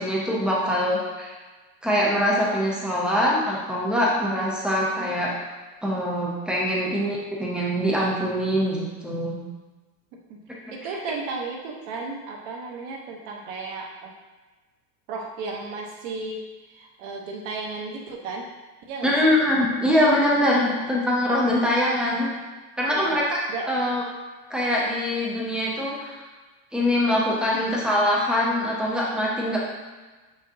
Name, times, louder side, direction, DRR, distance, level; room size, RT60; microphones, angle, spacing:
voice 1, 0.0-1.3 1.8-5.3 5.8-9.4 19.0-22.3 22.8-23.4 23.7-24.0 24.5-26.2 26.7-29.6, left 1 dB, ahead, -5 dB, 0.3 m, -23 dB
voice 2, 4.8-5.1 10.3-10.4 10.7-14.1 15.1-18.5 18.9-19.2 20.5-20.8 22.9-23.2 23.5-23.8 27.5-27.8, right 3 dB, 60° right, -1 dB, 1.0 m, -34 dB
6.6 x 5.9 x 2.7 m, 1.3 s
cardioid pair, 180°, 41 cm